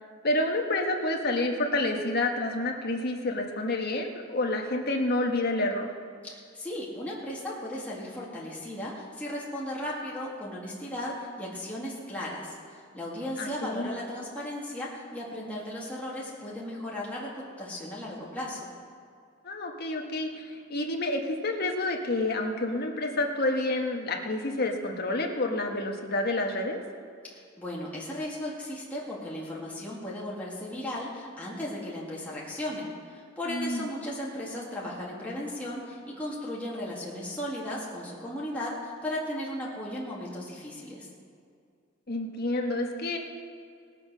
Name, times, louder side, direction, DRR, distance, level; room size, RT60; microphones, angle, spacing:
voice 1, 0.2-5.9 13.4-13.9 19.4-26.8 33.5-33.9 42.1-43.2, left 2 dB, 55° left, 2 dB, 1.5 m, -29 dB
voice 2, 6.2-18.7 27.2-41.1, left 1 dB, 10° left, -6 dB, 2.2 m, -36 dB
18.0 x 7.5 x 6.2 m, 2.3 s
head